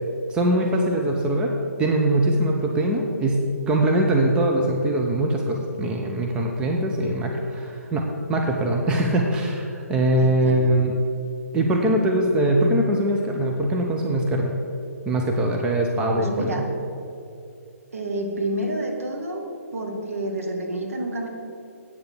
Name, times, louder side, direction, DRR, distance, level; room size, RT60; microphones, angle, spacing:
voice 1, 0.3-1.5 1.8-10.9 11.5-14.5 15.0-16.6, right 1 dB, 10° right, 0 dB, 0.8 m, -22 dB
voice 2, 10.2-10.7 16.1-16.7 17.9-19.4 19.7-21.3, right 1 dB, 65° right, 1 dB, 2.0 m, -29 dB
8.5 x 6.8 x 8.0 m, 2.6 s
figure-of-eight pair, 135°, 8 cm